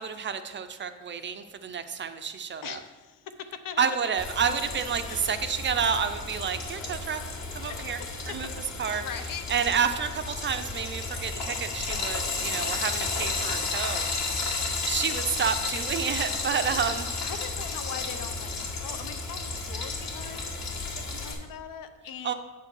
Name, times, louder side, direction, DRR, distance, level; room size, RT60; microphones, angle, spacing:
voice 1, 0.0-2.8 3.8-7.2 7.5-8.0 8.3-8.5 8.8-9.0 9.5-14.1 14.8-17.1 22.2-22.3, right 7 dB, 35° right, 10 dB, 0.4 m, -29 dB
voice 2, 2.6-3.2 3.6-3.8 5.1-5.2 7.7-8.4 9.0-9.5 16.6-16.8 17.2-20.6 20.9-22.3, left 8 dB, 70° left, 9 dB, 0.9 m, -41 dB
Frying (food), 4.2-21.3, left 3 dB, 50° left, 2.1 m, -33 dB
8.7 x 4.6 x 7.0 m, 1.3 s
cardioid pair, 160°, 35 cm